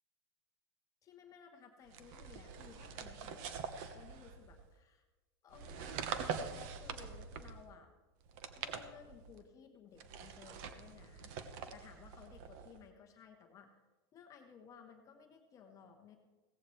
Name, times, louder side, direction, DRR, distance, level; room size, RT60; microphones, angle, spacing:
voice 1, 1.0-3.6 3.9-5.0 5.4-7.9 8.6-11.3 11.7-13.7 14.1-16.2, left 7 dB, 25° left, 4 dB, 1.0 m, -58 dB
sound 1, 1.9-4.7 5.5-7.7 8.2-9.4 10.0-12.8, right 6 dB, 50° right, 1.1 m, -44 dB
16.5 x 14.5 x 3.2 m, 1.2 s
supercardioid pair, 155°, 14 cm